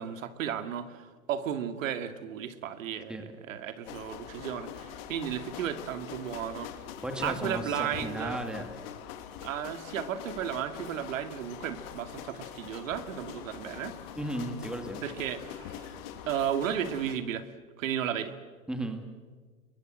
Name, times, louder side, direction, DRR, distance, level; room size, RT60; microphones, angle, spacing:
voice 1, 0.0-6.7 7.2-8.4 9.4-13.9 15.0-16.0 16.3-17.4 17.8-18.4, right 9 dB, 70° right, 9 dB, 2.4 m, -34 dB
sound 1, 3.8-17.1, left 10 dB, 45° left, 3.0 m, -43 dB
voice 2, 7.0-8.7 14.2-15.0 18.7-19.0, right 1 dB, ahead, 6 dB, 2.2 m, -35 dB
29.0 x 22.5 x 7.9 m, 1.5 s
hypercardioid pair, 145°, 41 cm